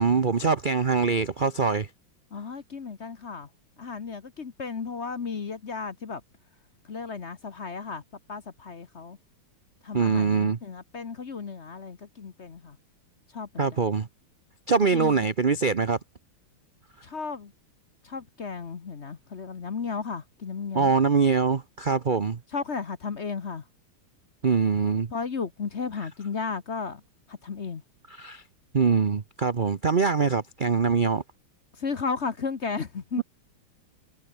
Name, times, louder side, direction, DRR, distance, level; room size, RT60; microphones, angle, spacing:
voice 1, 0.0-1.9 9.9-10.6 13.6-14.1 14.7-16.0 20.7-22.4 24.4-25.1 28.2-28.4 28.7-31.2, right 5 dB, 60° right, 0.5 m, -23 dB
voice 2, 2.3-3.5 3.8-6.2 6.9-8.0 8.3-9.2 9.8-12.8 13.3-13.7 14.8-15.2 17.0-17.5 18.0-20.9 22.5-23.6 25.1-27.0 27.3-27.8 31.8-33.2, left 5 dB, 40° left, 1.2 m, -34 dB
omnidirectional pair, 2.3 m